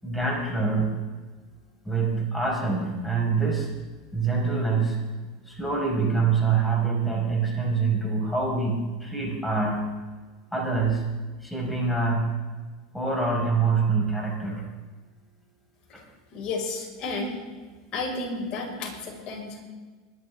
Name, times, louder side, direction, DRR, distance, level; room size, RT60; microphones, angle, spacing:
voice 1, 0.0-0.9 1.8-3.7 4.1-5.0 5.5-9.9 10.5-11.0 11.4-12.3 12.9-14.6 15.9-16.0, right 4 dB, 5° left, -2 dB, 5.1 m, -25 dB
voice 2, 16.3-17.4 17.9-19.6, left 3 dB, 45° left, -1 dB, 5.4 m, -32 dB
21.5 x 11.0 x 3.7 m, 1.4 s
hypercardioid pair, 105°, 2 cm